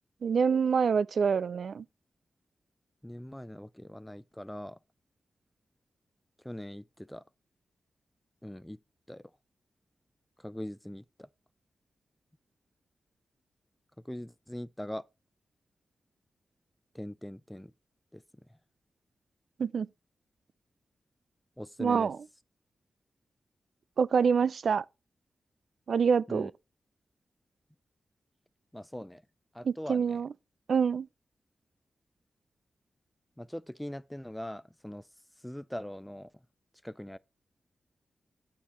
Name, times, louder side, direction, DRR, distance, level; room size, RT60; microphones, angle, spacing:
voice 1, 0.2-1.8 19.6-19.9 21.8-22.2 24.0-24.8 25.9-26.5 29.6-30.3 30.7-31.1, right 6 dB, 70° right, 0.3 m, -26 dB
voice 2, 3.0-4.8 6.4-7.2 8.4-8.8 9.1-9.3 10.4-11.3 14.1-15.0 16.9-17.7 18.1-18.2 21.6-22.1 26.3-26.5 28.7-29.2 29.5-30.2 33.4-35.0 35.4-36.3 36.8-37.2, left 1 dB, 5° left, 0.3 m, -41 dB
9.2 x 4.4 x 4.2 m
wide cardioid pair, 85°, 0 cm